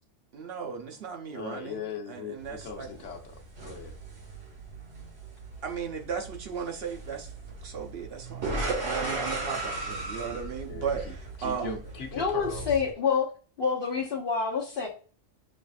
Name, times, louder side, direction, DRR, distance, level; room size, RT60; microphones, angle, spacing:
voice 1, 0.3-2.9 5.6-7.3 7.6-8.5 8.8-11.8, right 6 dB, 60° right, 3 dB, 0.9 m, -36 dB
voice 2, 1.3-3.9 10.7-11.1 11.4-12.8, left 5 dB, 85° left, 3 dB, 1.2 m, -40 dB
sound 1, 2.4-12.9, right 2 dB, 85° right, 1.8 m, -37 dB
voice 3, 12.1-13.3 13.6-14.9, left 5 dB, 55° left, -5 dB, 1.0 m, -27 dB
6.1 x 2.5 x 2.4 m, 0.39 s
omnidirectional pair, 1.2 m